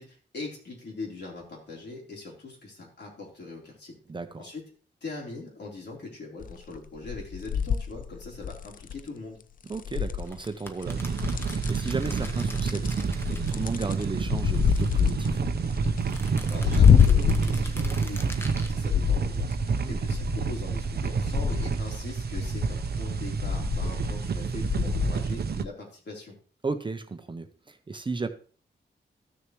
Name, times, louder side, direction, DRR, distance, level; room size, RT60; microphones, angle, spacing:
voice 1, 0.0-3.9 4.4-4.6 5.0-9.4 16.5-19.6 19.8-26.4, left 3 dB, 70° left, -3 dB, 3.7 m, -41 dB
voice 2, 4.1-4.5 9.7-11.1 11.7-15.4 19.7-20.0 26.6-28.3, right 3 dB, 25° right, 8 dB, 0.7 m, -34 dB
sound 1, 6.4-6.8 7.1-9.0 9.7-10.5 10.8-11.9 12.2-18.6 18.9-20.6 21.0-21.8 22.4-22.9 23.3-24.3 24.6-25.2 25.6-25.7, left 7 dB, 50° left, 0.4 m, -26 dB
sound 2, 10.2-14.0 14.3-15.4 16.0-18.7, left 1 dB, 15° left, 1.0 m, -43 dB
sound 3, 10.9-25.6, right 5 dB, 60° right, 0.7 m, -29 dB
14.0 x 6.5 x 3.1 m, 0.42 s
wide cardioid pair, 135°, 18 cm